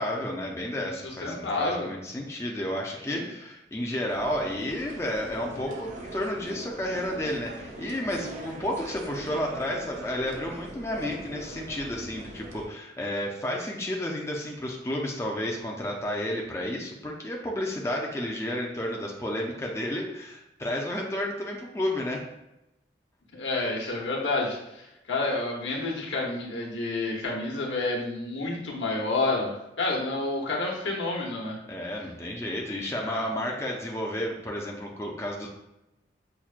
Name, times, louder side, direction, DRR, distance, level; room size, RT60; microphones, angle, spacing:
voice 1, 0.0-22.2 31.7-35.5, left 1 dB, 15° left, -1 dB, 0.4 m, -31 dB
voice 2, 0.8-1.9 3.1-3.3 23.3-24.8 25.1-31.6 33.0-33.2, left 2 dB, 85° left, -2 dB, 0.9 m, -29 dB
sound 1, 4.1-12.7, right 1 dB, 45° right, 0.5 m, -41 dB
5.7 x 2.1 x 2.4 m, 0.90 s
head